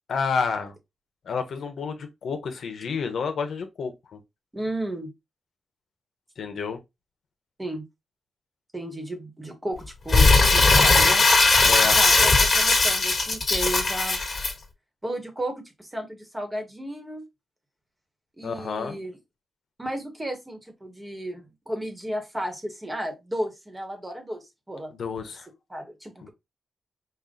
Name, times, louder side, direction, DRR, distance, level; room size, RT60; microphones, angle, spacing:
voice 1, 0.1-0.7 1.3-4.2 6.4-6.8 11.6-12.0 18.4-19.0 24.9-25.5, left 5 dB, 75° left, 0.9 m, -29 dB
voice 2, 4.5-5.1 7.6-7.8 8.7-11.3 12.0-14.2 15.0-17.2 18.4-19.1 19.8-24.9 25.7-26.3, right 1 dB, 15° right, 1.3 m, -33 dB
Crumpling crinkling, 10.1-14.5, left 3 dB, 40° left, 1.6 m, -18 dB
5.4 x 2.5 x 3.8 m
wide cardioid pair, 150°, 0 cm